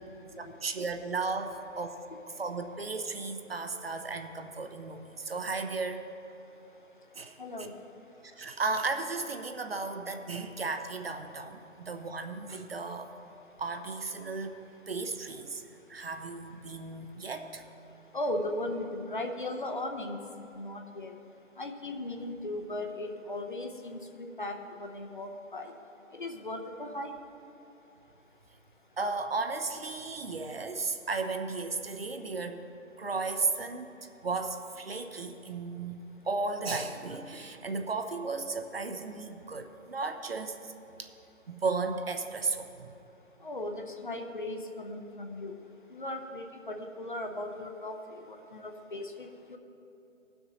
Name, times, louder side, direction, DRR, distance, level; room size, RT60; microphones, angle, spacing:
voice 1, 0.4-2.0 2.3-6.0 7.2-7.7 8.4-13.1 13.6-14.6 14.9-15.6 15.9-17.6 29.0-32.6 33.0-34.0 34.2-40.7 41.0-41.1 41.5-42.9, right 3 dB, 50° right, 6 dB, 0.6 m, -35 dB
voice 2, 7.4-7.7 18.1-20.2 20.6-21.1 21.6-25.7 26.2-27.1 43.4-45.5 45.9-49.6, left 1 dB, 40° left, 4 dB, 0.6 m, -37 dB
17.0 x 6.1 x 4.0 m, 2.9 s
figure-of-eight pair, 165°, 39 cm